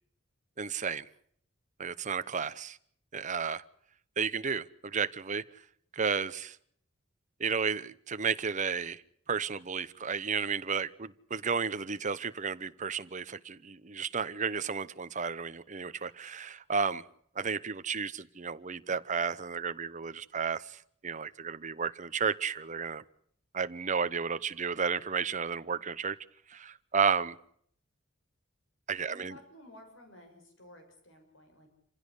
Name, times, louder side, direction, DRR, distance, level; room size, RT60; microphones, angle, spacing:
voice 1, 0.6-1.1 1.8-2.8 3.1-3.6 4.2-5.4 5.9-6.6 7.4-9.0 9.3-17.0 17.3-23.0 23.5-26.2 26.5-27.4 28.9-29.4, right 6 dB, 40° right, 0.9 m, -32 dB
voice 2, 29.1-31.7, left 1 dB, 65° left, 6.1 m, -54 dB
27.5 x 16.0 x 8.3 m
head